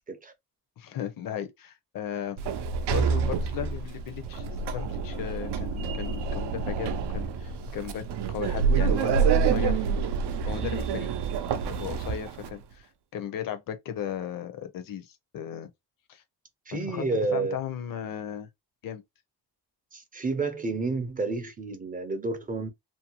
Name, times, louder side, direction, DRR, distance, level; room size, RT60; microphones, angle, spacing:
voice 1, 0.8-2.4 2.9-9.9 10.5-11.1 11.6-15.7 16.1-16.2 16.7-17.1 17.3-18.5 18.8-19.0, left 9 dB, 55° left, 0.6 m, -36 dB
Sliding door, 2.4-12.5, right 5 dB, 80° right, 0.5 m, -27 dB
voice 2, 16.7-17.6 19.9-22.7, right 3 dB, 20° right, 0.4 m, -30 dB
2.6 x 2.1 x 2.8 m
wide cardioid pair, 165°, 40 cm